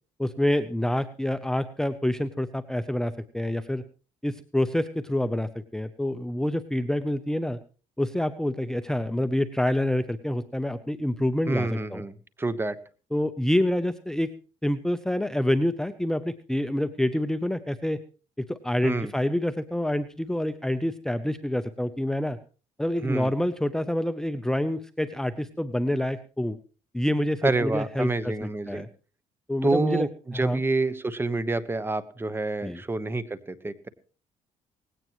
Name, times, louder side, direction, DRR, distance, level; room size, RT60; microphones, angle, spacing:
voice 1, 0.2-3.8 4.2-7.6 8.0-12.0 13.1-14.3 14.6-18.0 18.4-22.4 22.8-26.6 26.9-28.9 29.5-30.1 30.3-30.6 32.6-32.8, left 1 dB, 5° left, 11 dB, 0.7 m, -27 dB
voice 2, 11.5-12.8 18.8-19.1 23.0-23.3 27.4-28.9 29.6-33.9, right 3 dB, 15° right, 15 dB, 1.2 m, -28 dB
18.5 x 16.5 x 3.1 m, 0.37 s
cardioid pair, 115°, 13 cm